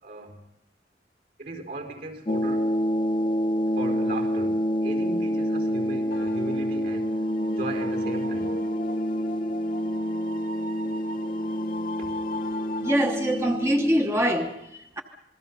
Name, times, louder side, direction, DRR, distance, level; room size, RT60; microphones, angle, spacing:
voice 1, 0.0-0.4 1.4-2.7 3.8-7.2 7.5-8.6 12.0-12.2, right 2 dB, 60° right, 4.9 m, -37 dB
sound 1, 2.3-14.2, equal, 30° left, 0.8 m, -27 dB
sound 2, 6.1-13.0, left 2 dB, 55° left, 1.1 m, -39 dB
voice 2, 12.8-15.0, equal, 15° right, 1.1 m, -24 dB
27.5 x 21.0 x 5.4 m
head